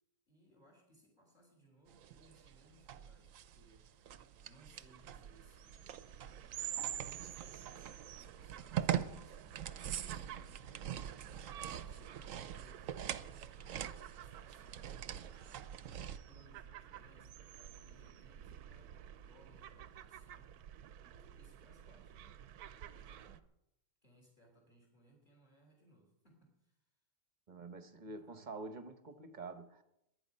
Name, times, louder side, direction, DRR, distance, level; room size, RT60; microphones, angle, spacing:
voice 1, 0.3-3.9 4.4-6.2 6.8-11.3 11.6-15.9 16.3-20.5 21.1-23.5 24.0-26.8 27.9-28.5, equal, 30° left, 3.5 m, -66 dB
sound 1, 1.9-16.2, right 10 dB, 65° right, 1.0 m, -44 dB
sound 2, 4.5-23.4, right 10 dB, 90° right, 1.2 m, -50 dB
sound 3, 10.9-14.3, left 3 dB, 70° left, 8.4 m, -74 dB
voice 2, 27.5-29.8, right 3 dB, 35° right, 0.9 m, -47 dB
22.5 x 8.9 x 5.5 m
omnidirectional pair, 1.6 m